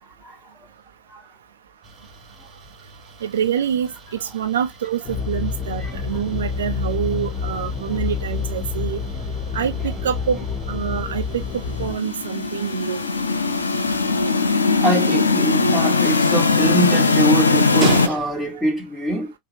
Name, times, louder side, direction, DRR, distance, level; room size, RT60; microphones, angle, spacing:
sound 1, 1.8-18.7, right 5 dB, 25° right, 1.0 m, -38 dB
voice 1, 3.2-3.9 4.2-9.0 9.5-13.0 18.1-18.2, right 8 dB, 65° right, 0.6 m, -26 dB
sound 2, 5.0-12.0, left 5 dB, 35° left, 0.7 m, -28 dB
sound 3, 11.7-18.1, left 4 dB, 80° left, 0.5 m, -19 dB
voice 2, 14.8-19.3, right 1 dB, 5° right, 1.5 m, -23 dB
5.4 x 2.0 x 2.7 m
figure-of-eight pair, 80°, 0 cm